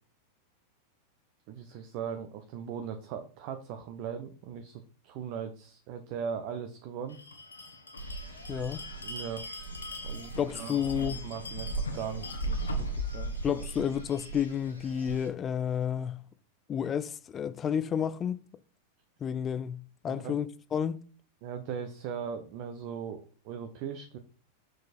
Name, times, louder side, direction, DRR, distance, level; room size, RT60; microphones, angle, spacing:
voice 1, 1.5-7.2 9.0-9.5 10.0-10.8 11.2-13.3 20.1-20.4 21.4-24.2, right 7 dB, 45° right, 1.0 m, -39 dB
Bell, 7.1-14.3, left 3 dB, 75° left, 1.5 m, -44 dB
sound 1, 8.0-15.3, right 2 dB, 90° right, 2.7 m, -37 dB
voice 2, 8.5-8.8 10.4-11.3 13.4-16.2 16.7-18.4 19.2-21.0, left 8 dB, 25° left, 0.6 m, -31 dB
6.7 x 6.6 x 4.4 m
figure-of-eight pair, 90°, 0 cm